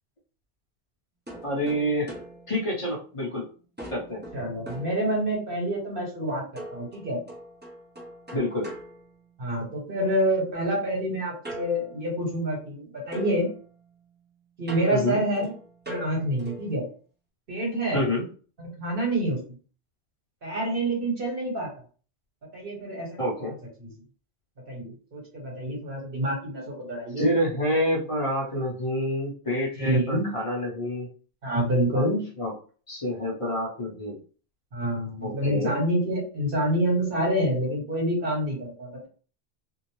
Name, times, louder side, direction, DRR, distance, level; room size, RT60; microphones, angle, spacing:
sound 1, 1.3-3.4 3.8-5.6 6.6-9.8 11.4-12.8 13.1-16.8, right 1 dB, 15° right, 0.5 m, -43 dB
voice 1, 1.4-2.1 2.5-3.4 3.9-4.2 8.3-8.7 14.9-15.2 17.9-18.2 23.2-23.5 27.2-31.1 31.9-32.1 32.4-32.5 32.9-34.2 35.2-35.7, equal, 30° left, -3 dB, 0.8 m, -27 dB
voice 2, 4.3-7.2 9.4-13.5 14.6-15.5 15.9-16.8 17.5-18.0 18.6-19.4 20.4-21.7 22.5-23.1 23.4-23.5 23.8-23.9 24.7-27.3 29.8-30.3 31.4-32.2 34.7-39.1, right 1 dB, 55° right, -2 dB, 1.3 m, -27 dB
2.7 x 2.0 x 3.0 m, 0.40 s
omnidirectional pair, 1.1 m